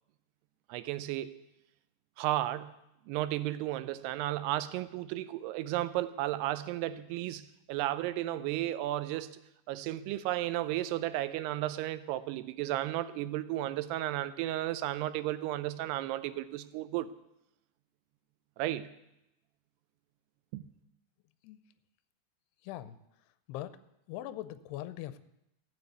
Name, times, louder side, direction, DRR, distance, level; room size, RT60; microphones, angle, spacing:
voice 1, 0.7-1.3 2.2-2.7 3.1-9.4 9.7-17.1 18.6-18.9 20.5-20.7, right 14 dB, 85° right, 2.7 m, -33 dB
voice 2, 22.6-23.0 23.5-23.8 24.1-25.2, left 13 dB, 85° left, 2.7 m, -41 dB
14.5 x 7.0 x 8.0 m
omnidirectional pair, 4.7 m